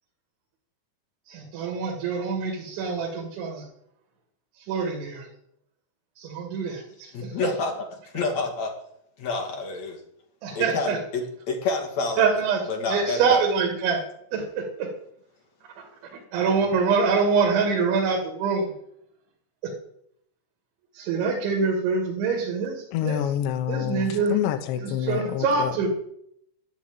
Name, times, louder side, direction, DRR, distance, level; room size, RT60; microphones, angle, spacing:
voice 1, 1.3-3.7 4.6-5.3 6.2-7.3 10.4-11.0 12.2-14.0 14.3-14.9 16.3-18.7 19.6-19.7 20.9-23.3 23.7-24.4 24.8-25.9, right 5 dB, 80° right, -1 dB, 4.6 m, -25 dB
voice 2, 7.1-7.7 8.1-8.7 9.2-10.0 10.5-12.3 12.7-13.4, left 3 dB, 45° left, 3 dB, 2.8 m, -28 dB
voice 3, 22.9-25.7, left 11 dB, 75° left, 8 dB, 3.3 m, -27 dB
11.5 x 9.4 x 8.7 m, 0.71 s
omnidirectional pair, 5.3 m